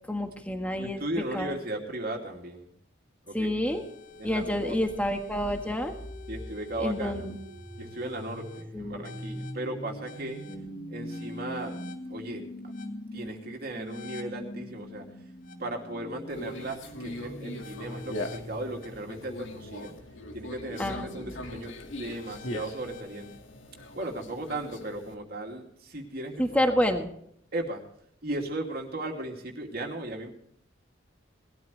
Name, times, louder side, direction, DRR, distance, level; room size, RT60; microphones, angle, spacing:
voice 1, 0.1-1.0 1.3-1.6 3.3-3.8 4.2-5.9 6.8-7.3 8.7-9.0 10.5-10.7 20.8-21.3 26.4-27.1, left 1 dB, 5° left, 5 dB, 1.6 m, -28 dB
voice 2, 0.8-2.6 3.3-3.5 4.2-4.8 6.3-7.2 7.8-10.4 10.9-11.8 12.1-12.5 13.1-15.1 15.6-19.9 20.3-23.3 23.9-26.7 27.5-27.8 28.2-30.3, right 1 dB, 50° right, 1 dB, 2.7 m, -36 dB
sound 1, 3.7-23.4, left 1 dB, 45° left, 1.8 m, -43 dB
Conversation, 16.3-25.1, left 1 dB, 75° left, 2.0 m, -41 dB
20.0 x 13.0 x 3.3 m, 0.69 s
head